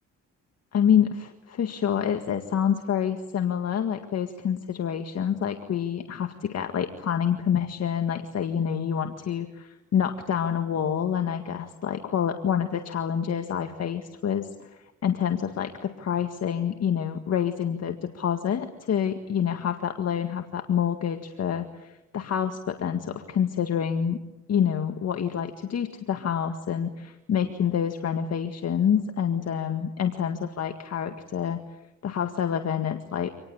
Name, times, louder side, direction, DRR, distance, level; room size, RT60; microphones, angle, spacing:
voice 1, 0.7-24.2 24.5-31.6 32.0-33.3, left 8 dB, 55° left, 6 dB, 1.9 m, -27 dB
26.5 x 19.5 x 8.8 m, 0.98 s
cardioid pair, 90°, 30 cm